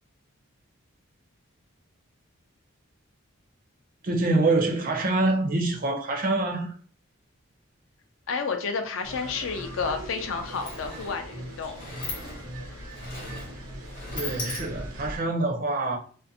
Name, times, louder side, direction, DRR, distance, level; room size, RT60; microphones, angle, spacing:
voice 1, 4.0-6.7 14.1-16.0, right 2 dB, 40° right, 0.5 m, -25 dB
voice 2, 8.3-11.8, left 5 dB, 65° left, 0.4 m, -31 dB
sound 1, 9.0-15.2, right 1 dB, 90° right, 0.7 m, -40 dB
Sliding door, 10.2-15.1, left 3 dB, 40° left, 0.7 m, -40 dB
2.5 x 2.0 x 2.6 m
head